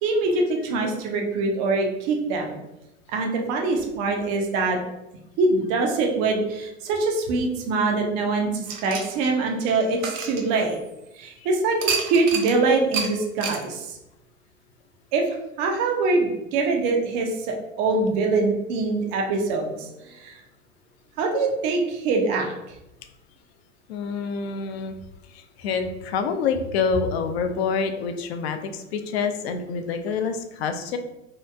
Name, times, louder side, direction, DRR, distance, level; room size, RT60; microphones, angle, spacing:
voice 1, 0.0-2.6 3.1-4.8 5.4-10.8 11.2-11.8 12.0-14.0 15.1-15.2 15.6-20.4 21.2-22.5, right 3 dB, 25° right, 2 dB, 0.3 m, -24 dB
sound 1, 8.7-11.1 11.8-12.6 12.9-13.1 13.4-13.6, right 6 dB, 65° right, 0.7 m, -29 dB
voice 2, 23.9-24.9 25.3-31.0, left 5 dB, 50° left, 8 dB, 0.4 m, -27 dB
2.8 x 2.3 x 2.2 m, 0.92 s
figure-of-eight pair, 95°, 41 cm